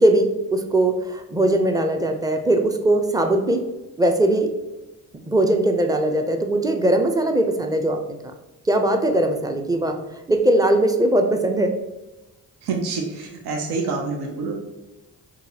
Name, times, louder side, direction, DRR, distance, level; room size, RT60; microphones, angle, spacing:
voice 1, 0.0-3.6 4.0-4.5 5.3-8.2 8.7-10.0 10.3-11.7, right 1 dB, 10° right, 5 dB, 0.4 m, -20 dB
voice 2, 12.6-14.5, right 4 dB, 80° right, 1 dB, 0.7 m, -27 dB
3.9 x 2.3 x 2.7 m, 1.0 s
supercardioid pair, 55°, 39 cm